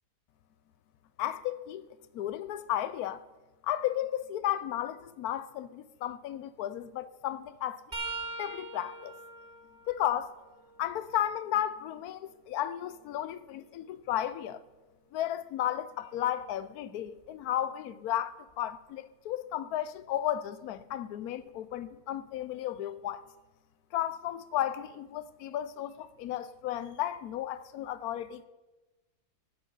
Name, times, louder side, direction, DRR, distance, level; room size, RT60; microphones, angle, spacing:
voice 1, 1.2-1.9 2.1-3.2 3.6-7.8 8.4-9.1 9.9-10.3 10.8-14.6 15.1-23.2 23.9-28.4, left 12 dB, 80° left, 1.1 m, -34 dB
sound 1, 7.9-11.7 12.2-14.2 17.1-17.3 18.5-18.7 20.0-20.1, right 3 dB, 35° right, 1.9 m, -44 dB
14.5 x 7.6 x 5.5 m
omnidirectional pair, 1.6 m